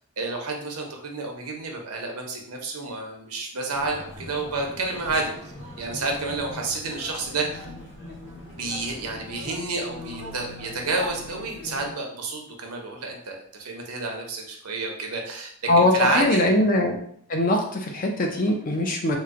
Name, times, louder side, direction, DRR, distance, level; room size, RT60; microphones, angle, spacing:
voice 1, 0.2-5.3 5.8-7.7 8.5-16.4, right 3 dB, 90° right, 2 dB, 0.7 m, -30 dB
sound 1, 3.7-11.9, left 1 dB, 55° left, 1.2 m, -41 dB
voice 2, 15.7-17.0 17.3-19.2, left 1 dB, 35° left, 2 dB, 0.5 m, -21 dB
3.0 x 2.1 x 3.6 m, 0.64 s
head